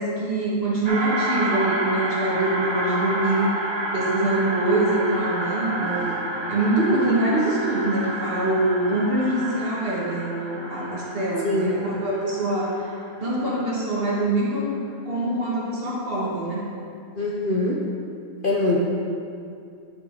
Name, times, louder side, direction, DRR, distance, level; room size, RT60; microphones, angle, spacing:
voice 1, 0.0-3.5 3.9-12.9 13.2-14.7 15.0-16.7, right 2 dB, 45° right, -6 dB, 1.8 m, -24 dB
sound 1, 0.8-13.5, right 1 dB, 25° right, 0.7 m, -30 dB
voice 2, 11.4-11.8 17.1-17.9 18.4-18.8, left 2 dB, 50° left, -3 dB, 0.7 m, -23 dB
11.0 x 4.8 x 3.7 m, 2.5 s
omnidirectional pair, 1.5 m